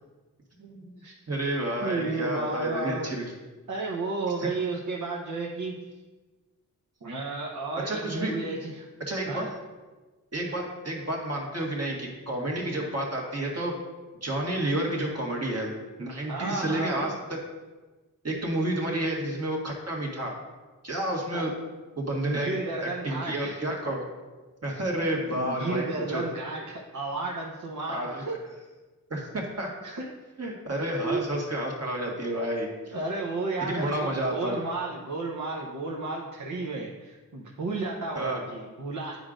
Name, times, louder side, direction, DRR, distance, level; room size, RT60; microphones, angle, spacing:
voice 1, 0.6-0.9 1.3-3.2 4.4-4.5 7.8-8.5 9.1-9.5 10.3-13.8 14.2-17.1 18.2-20.4 20.8-21.5 22.0-22.5 22.8-24.1 24.6-26.2 27.9-28.3 29.1-29.7 30.4-32.9 33.7-34.6 38.1-38.4, right 1 dB, 45° right, -1 dB, 1.6 m, -30 dB
voice 2, 1.8-3.3 3.7-5.8 7.0-8.9 9.3-9.5 16.3-17.2 18.8-18.9 21.3-21.4 22.2-23.6 25.3-28.4 29.8-30.1 31.0-31.2 32.9-39.2, right 3 dB, 60° right, -3 dB, 0.9 m, -33 dB
9.4 x 4.9 x 2.5 m, 1.2 s
cardioid pair, 45°, 34 cm